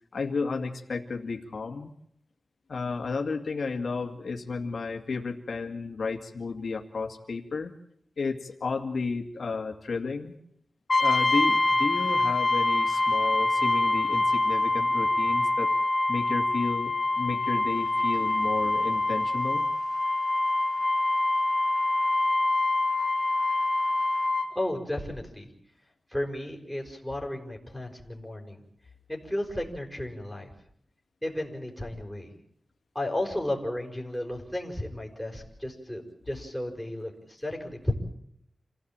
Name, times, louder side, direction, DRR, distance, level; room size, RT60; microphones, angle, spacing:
voice 1, 0.1-1.9 2.7-7.7 8.2-10.4 11.0-15.7 16.1-19.7, left 4 dB, 75° left, 3 dB, 2.1 m, -32 dB
Brass instrument, 10.9-24.5, left 2 dB, 45° left, 2.6 m, -25 dB
voice 2, 24.5-25.5 26.1-28.6 29.1-30.5 31.2-32.4 32.9-37.9, left 1 dB, ahead, 0 dB, 5.5 m, -33 dB
27.5 x 16.5 x 8.8 m, 0.72 s
wide cardioid pair, 120°, 0 cm